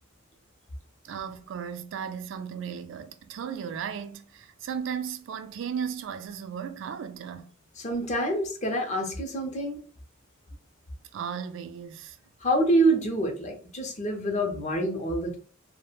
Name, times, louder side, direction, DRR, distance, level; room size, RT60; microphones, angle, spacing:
voice 1, 1.0-7.5 11.1-12.2, right 7 dB, 65° right, 0.3 m, -35 dB
voice 2, 7.8-9.8 12.4-15.4, right 1 dB, 35° left, 0.6 m, -26 dB
2.3 x 2.1 x 3.0 m
head